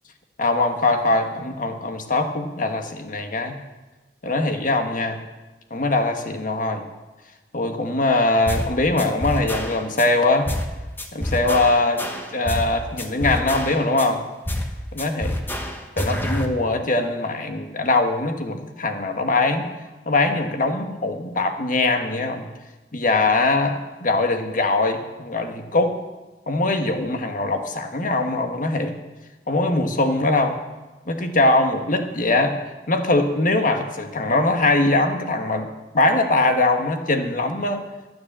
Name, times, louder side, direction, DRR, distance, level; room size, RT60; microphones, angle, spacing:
voice 1, 0.4-3.6 4.2-5.2 5.7-6.8 7.5-10.5 11.1-12.0 12.3-14.2 14.9-15.3 16.0-19.7 20.1-22.4 22.9-26.0 26.5-28.9 29.5-30.6 31.1-32.6 32.9-35.7 35.9-37.8, left 2 dB, 50° left, 6 dB, 1.4 m, -22 dB
sound 1, 8.5-8.7 9.0-10.1 10.5-10.7 11.0-12.7 13.0-14.1 14.5-14.7 15.0-16.5, left 1 dB, 10° left, 1.3 m, -27 dB
12.5 x 9.5 x 7.4 m, 1.1 s
head